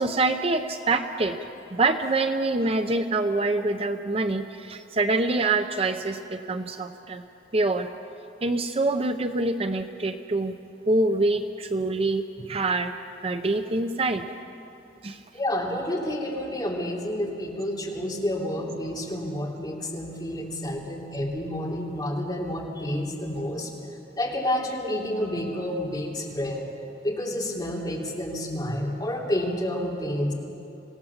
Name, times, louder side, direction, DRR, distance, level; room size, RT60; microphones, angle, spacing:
voice 1, 0.0-1.4 1.7-7.2 7.5-7.9 8.4-10.5 10.9-14.3 15.0-15.2, right 2 dB, 35° right, 8 dB, 0.6 m, -25 dB
voice 2, 15.3-23.7 24.2-26.7 27.0-30.3, left 1 dB, 25° left, -3 dB, 3.2 m, -29 dB
26.0 x 17.0 x 7.3 m, 2.7 s
head